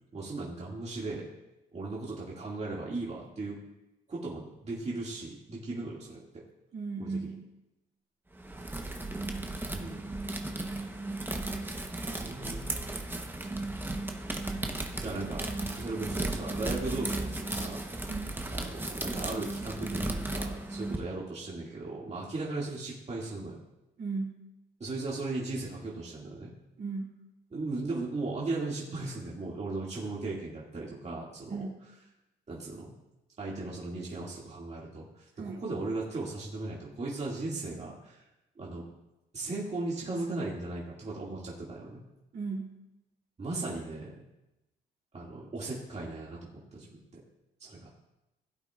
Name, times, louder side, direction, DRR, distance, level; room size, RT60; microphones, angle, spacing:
voice 1, 0.1-1.3 1.7-3.6 4.1-6.2 7.0-7.3 9.7-10.1 12.0-12.7 15.0-15.5 15.8-17.8 18.5-23.6 24.8-26.5 27.5-31.7 32.5-32.9 33.4-38.3 38.6-38.8 39.3-42.0 43.4-44.2 45.1-47.0 47.6-47.9, right 2 dB, 35° right, -5 dB, 2.4 m, -37 dB
voice 2, 6.7-7.4 18.1-18.4 24.0-24.4 26.8-27.1 31.5-31.7 35.4-35.6 42.3-42.7, right 4 dB, 70° right, -3 dB, 3.3 m, -36 dB
sound 1, 8.3-21.0, right 2 dB, 10° right, 1.1 m, -35 dB
16.0 x 8.4 x 2.5 m, 0.94 s
cardioid pair, 90°, 20 cm